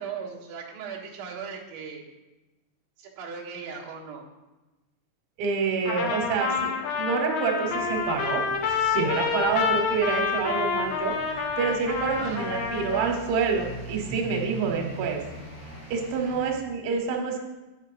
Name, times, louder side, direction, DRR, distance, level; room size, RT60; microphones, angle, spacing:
voice 1, 0.0-2.0 3.0-4.2 12.0-12.5, right 6 dB, 60° right, -5 dB, 3.1 m, -38 dB
voice 2, 5.4-8.4 8.7-15.2 15.9-17.5, right 5 dB, 85° right, 2 dB, 3.5 m, -27 dB
Trumpet, 5.9-13.2, left 6 dB, 85° left, 1.7 m, -28 dB
sound 1, 7.6-16.5, equal, 40° left, 2.3 m, -42 dB
8.9 x 7.5 x 4.9 m, 1.1 s
omnidirectional pair, 5.1 m